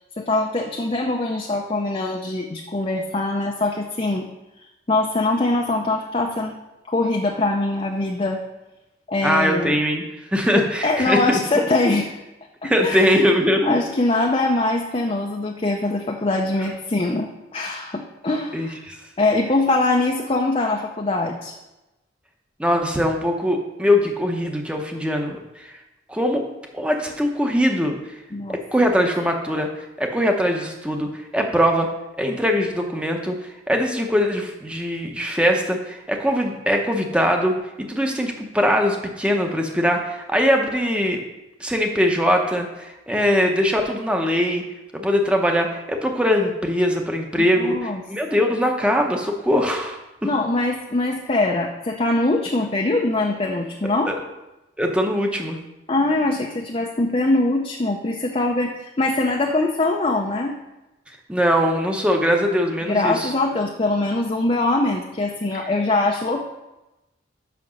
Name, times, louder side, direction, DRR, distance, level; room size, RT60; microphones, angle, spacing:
voice 1, 0.2-4.3 4.9-6.5 6.9-8.4 9.1-9.8 10.5-12.2 12.6-13.2 13.6-18.8 19.2-21.5 28.3-28.6 47.4-48.0 50.2-54.1 55.9-60.6 62.8-66.5, left 2 dB, 30° left, 1 dB, 0.5 m, -22 dB
voice 2, 9.2-10.0 10.3-11.4 12.6-13.8 16.6-16.7 18.5-19.0 22.6-25.7 26.1-26.4 26.7-28.0 28.7-29.7 30.0-31.9 32.2-33.3 33.7-41.2 41.6-44.6 44.9-50.3 54.1-54.2 54.8-55.6 61.3-63.3, equal, 5° right, 2 dB, 0.8 m, -21 dB
5.9 x 5.9 x 6.4 m, 1.0 s
head